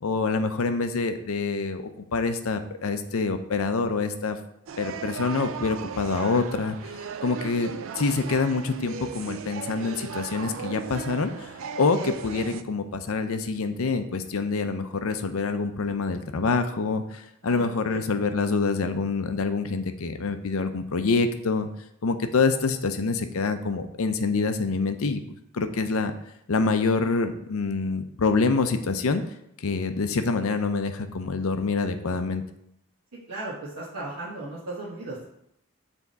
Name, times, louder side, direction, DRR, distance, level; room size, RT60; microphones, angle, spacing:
voice 1, 0.0-1.8 2.1-4.4 4.8-6.8 7.2-21.7 22.0-26.1 26.5-29.2 29.6-32.4, left 4 dB, 70° left, 8 dB, 0.6 m, -26 dB
sound 1, 4.7-12.6, right 6 dB, 60° right, 0.4 m, -36 dB
voice 2, 17.4-18.2 33.3-35.3, right 2 dB, 85° right, -6 dB, 1.2 m, -36 dB
7.0 x 3.5 x 4.0 m, 0.76 s
head